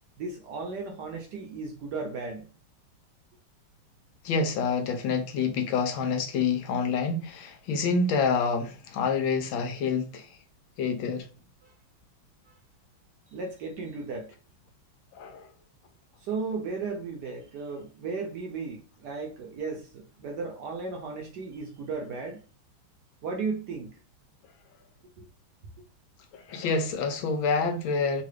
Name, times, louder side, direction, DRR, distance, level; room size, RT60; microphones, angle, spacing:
voice 1, 0.2-2.5 11.6-11.7 12.5-12.6 13.3-14.3 16.2-22.4 23.2-24.0 25.2-25.3, right 4 dB, 65° right, 1.1 m, -35 dB
voice 2, 4.2-10.4 10.8-11.3 15.1-15.5 26.3-28.2, left 5 dB, 75° left, 1.3 m, -27 dB
3.7 x 2.3 x 3.2 m
omnidirectional pair, 2.3 m